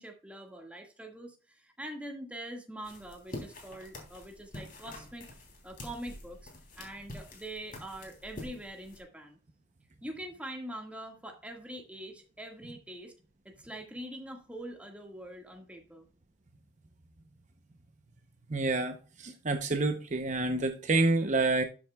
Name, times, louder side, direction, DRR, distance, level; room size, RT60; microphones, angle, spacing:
voice 1, 0.0-5.3 5.6-6.5 6.8-9.4 10.0-13.1 13.5-16.1, right 1 dB, 5° right, 1.8 m, -44 dB
sound 1, 2.8-9.0, left 1 dB, 50° left, 3.2 m, -47 dB
voice 2, 18.5-21.6, right 2 dB, 40° right, 0.7 m, -28 dB
12.0 x 7.5 x 2.3 m
head